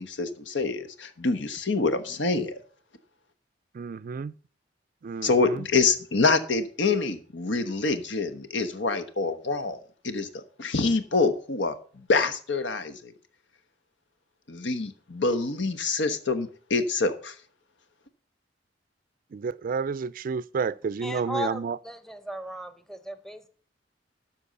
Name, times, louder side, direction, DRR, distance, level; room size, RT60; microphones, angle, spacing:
voice 1, 0.0-2.6 5.2-9.8 10.0-13.1 14.5-17.3, left 3 dB, 85° left, 1.2 m, -26 dB
voice 2, 3.8-4.3 5.0-5.5 19.3-21.8, right 5 dB, 50° right, 0.3 m, -30 dB
voice 3, 21.0-23.5, equal, ahead, 0.8 m, -36 dB
12.5 x 4.5 x 6.8 m
head